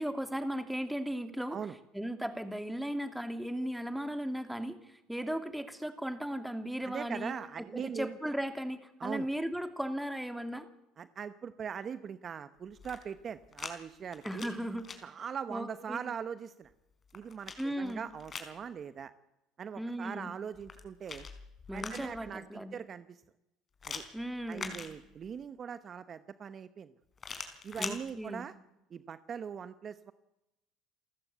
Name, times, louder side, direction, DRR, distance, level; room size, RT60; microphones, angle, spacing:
voice 1, 0.0-1.6 1.9-10.7 14.2-14.8 15.5-16.1 17.6-18.0 19.8-20.3 21.7-22.8 24.1-24.7 27.8-28.4, equal, 5° right, 8 dB, 2.7 m, -36 dB
voice 2, 6.8-8.2 9.0-9.3 11.0-14.5 15.0-16.7 17.1-19.1 19.6-21.3 21.7-23.2 23.9-24.0 24.5-26.9 27.6-28.5 28.9-30.1, right 7 dB, 40° right, 12 dB, 1.0 m, -41 dB
sound 1, 12.7-13.7 14.1-15.0 16.7-18.6 20.5-22.3 23.8-25.4 27.2-28.0, left 5 dB, 35° left, 4.4 m, -43 dB
28.5 x 14.5 x 8.2 m, 0.93 s
supercardioid pair, 85°, 0 cm